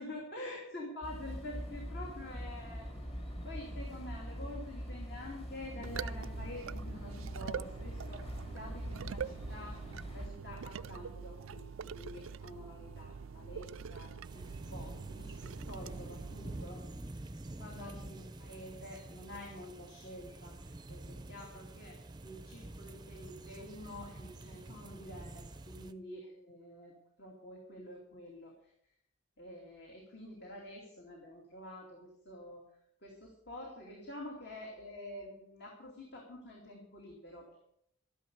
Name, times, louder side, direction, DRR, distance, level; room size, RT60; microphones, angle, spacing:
voice 1, 0.0-2.9 3.4-9.8 10.1-16.9 17.6-20.6 20.9-26.9 27.2-28.5 29.4-32.6 33.0-37.6, left 1 dB, 50° left, -1 dB, 2.8 m, -48 dB
sound 1, 1.0-10.3, equal, 30° left, 2.3 m, -43 dB
sound 2, 5.8-16.7, right 6 dB, 80° right, 0.4 m, -44 dB
sound 3, 14.2-25.9, right 2 dB, 20° right, 0.6 m, -47 dB
13.0 x 11.0 x 7.0 m, 0.74 s
head